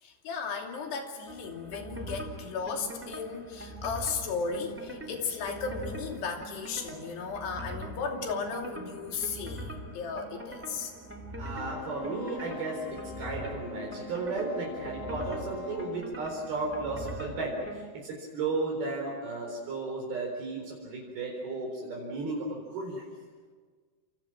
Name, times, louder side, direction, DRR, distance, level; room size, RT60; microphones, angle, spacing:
voice 1, 0.0-10.9, left 5 dB, 80° left, 2 dB, 5.0 m, -35 dB
sound 1, 1.3-17.8, right 1 dB, 5° right, 1.7 m, -42 dB
voice 2, 11.4-23.1, right 3 dB, 65° right, -2 dB, 6.1 m, -34 dB
Wind instrument woodwind instrument, 11.6-16.1, left 8 dB, 55° left, 3.5 m, -44 dB
29.5 x 27.5 x 6.1 m, 1.5 s
omnidirectional pair, 4.7 m